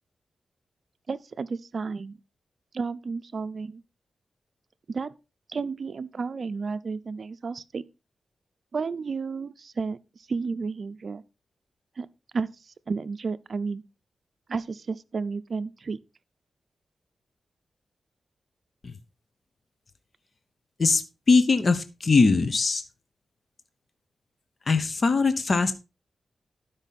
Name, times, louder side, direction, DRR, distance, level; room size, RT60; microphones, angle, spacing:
voice 1, 1.1-2.2 2.7-3.8 4.9-5.1 5.5-7.8 8.7-10.0 10.3-11.2 12.0-12.1 12.3-13.8 14.5-16.0, right 4 dB, 55° right, 0.6 m, -32 dB
voice 2, 21.3-22.8 24.7-25.7, left 4 dB, 45° left, 0.9 m, -21 dB
12.0 x 5.4 x 4.1 m
wide cardioid pair, 110°, 0 cm